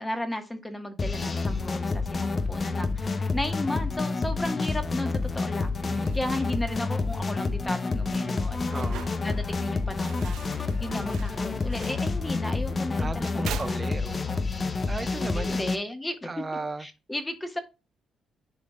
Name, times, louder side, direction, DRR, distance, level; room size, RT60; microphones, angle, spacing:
voice 1, 0.0-13.8 15.3-16.3 16.8-17.6, left 1 dB, 15° left, 1.5 m, -35 dB
sound 1, 1.0-15.8, left 3 dB, 35° left, 0.8 m, -29 dB
voice 2, 5.8-6.2 8.7-9.0 13.0-14.5 14.9-15.6 16.2-16.9, right 3 dB, 25° right, 0.6 m, -36 dB
sound 2, 6.0-14.4, right 8 dB, 80° right, 0.8 m, -45 dB
Crowd, 8.4-12.5, left 4 dB, 55° left, 3.1 m, -51 dB
10.5 x 4.0 x 2.3 m
cardioid pair, 90°, 0 cm